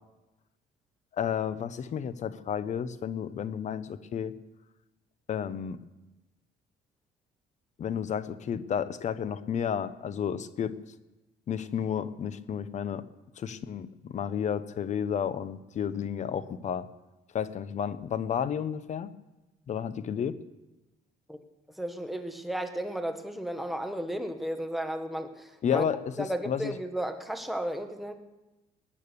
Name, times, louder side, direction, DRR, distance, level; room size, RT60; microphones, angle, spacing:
voice 1, 1.2-4.3 5.3-5.8 7.8-10.7 11.5-13.0 13.4-16.9 17.3-19.1 19.7-20.4 25.6-26.7, left 8 dB, 45° left, 15 dB, 0.8 m, -31 dB
voice 2, 21.8-25.9 26.2-28.1, right 1 dB, ahead, 5 dB, 1.4 m, -34 dB
21.0 x 8.7 x 6.9 m, 1.1 s
cardioid pair, 110°, 17 cm